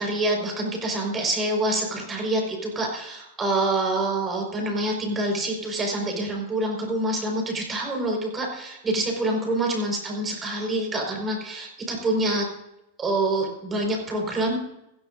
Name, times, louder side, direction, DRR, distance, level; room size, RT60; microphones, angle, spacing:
voice 1, 0.0-12.5 13.0-14.6, right 1 dB, 20° right, 1 dB, 4.9 m, -26 dB
16.5 x 15.5 x 2.6 m, 0.87 s
figure-of-eight pair, 90°, 0 cm